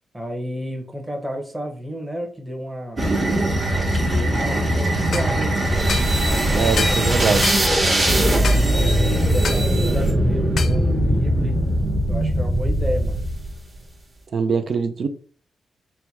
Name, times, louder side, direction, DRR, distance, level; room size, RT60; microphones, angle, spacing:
voice 1, 0.1-3.0 4.1-5.9 6.2-7.2 7.8-11.6 12.1-13.2, equal, 10° right, 1.1 m, -31 dB
sound 1, 3.0-13.6, right 1 dB, 25° right, 1.3 m, -20 dB
sound 2, 5.1-5.3 5.9-6.1 6.8-7.0 7.4-7.6 8.4-8.6 9.4-9.7 10.6-10.8, left 5 dB, 65° left, 0.5 m, -27 dB
voice 2, 6.6-7.5 14.3-15.1, right 5 dB, 55° right, 0.5 m, -22 dB
4.3 x 2.3 x 4.5 m
wide cardioid pair, 125°, 0 cm